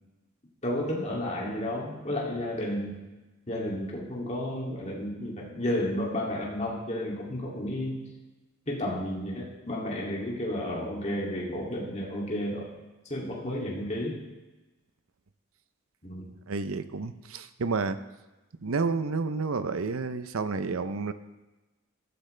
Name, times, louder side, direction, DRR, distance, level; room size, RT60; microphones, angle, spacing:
voice 1, 0.6-3.0 3.5-8.0 8.7-12.7 13.0-14.2 16.0-16.3, left 1 dB, 30° left, -3 dB, 2.6 m, -32 dB
voice 2, 16.5-18.0 18.6-21.1, right 4 dB, 75° right, 12 dB, 0.7 m, -30 dB
15.0 x 12.0 x 3.3 m, 1.1 s
head